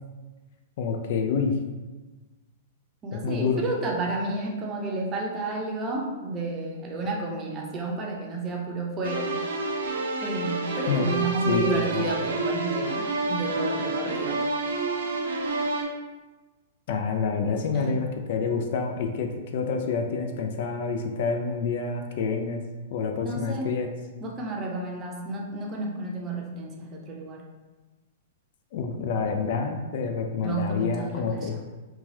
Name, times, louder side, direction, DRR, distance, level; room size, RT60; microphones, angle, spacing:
voice 1, 0.8-1.6 3.1-3.6 10.9-11.2 11.5-12.1 16.9-22.6 22.9-23.9 28.7-31.5, left 5 dB, 60° left, 4 dB, 0.3 m, -28 dB
voice 2, 3.0-9.3 10.2-14.4 17.7-17.9 23.2-23.8 24.2-27.4 30.4-31.5, right 2 dB, 30° right, 0 dB, 0.6 m, -31 dB
sound 1, 9.0-15.8, right 2 dB, 75° right, 0.4 m, -29 dB
3.0 x 2.3 x 2.7 m, 1.2 s
hypercardioid pair, 115°, 0 cm